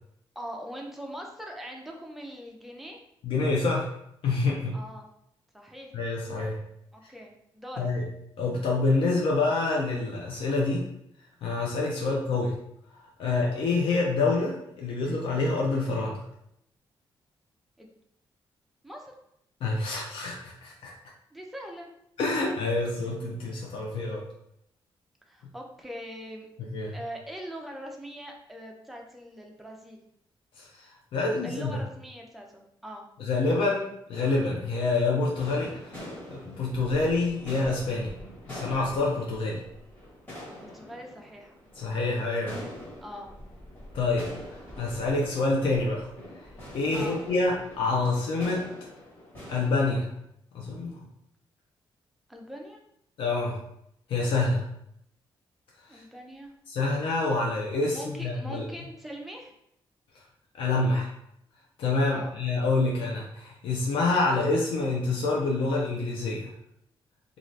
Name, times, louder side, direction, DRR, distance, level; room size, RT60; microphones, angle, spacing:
voice 1, 0.4-3.0 4.7-5.1 5.5-5.9 6.9-7.9 12.0-12.2 17.8-17.9 18.8-19.1 21.3-21.9 25.3-26.5 26.9-30.0 31.2-33.1 40.4-41.6 43.0-43.4 46.9-47.2 52.3-52.8 55.9-56.5 57.9-59.5 62.1-62.4, equal, ahead, 0 dB, 0.4 m, -42 dB
voice 2, 3.2-3.9 4.2-4.8 5.9-6.6 7.8-8.0 8.4-10.9 11.4-12.5 13.2-16.2 19.6-20.9 22.2-24.2 26.7-26.9 30.6-31.7 33.2-35.9 36.3-38.1 38.5-39.6 41.8-42.6 43.9-46.1 46.7-48.7 49.5-50.1 50.5-51.0 53.2-53.6 54.1-54.6 55.9-56.0 56.7-58.6 60.5-61.1 61.8-66.5, left 3 dB, 75° left, -2 dB, 0.5 m, -27 dB
sound 1, 34.1-49.7, left 1 dB, 20° left, 1.3 m, -44 dB
2.6 x 2.4 x 3.1 m, 0.76 s
wide cardioid pair, 145°, 9 cm